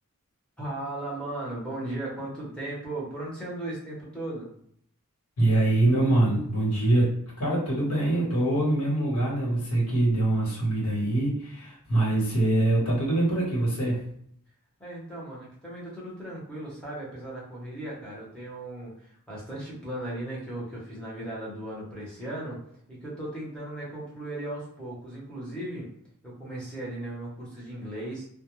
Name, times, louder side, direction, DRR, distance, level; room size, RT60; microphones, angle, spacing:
voice 1, 0.6-4.5 14.8-22.6 22.9-25.9 26.2-28.3, right 1 dB, 5° left, -6 dB, 0.8 m, -36 dB
voice 2, 5.4-7.1 7.4-14.0, right 2 dB, 80° left, -5 dB, 1.2 m, -24 dB
2.2 x 2.1 x 3.0 m, 0.66 s
head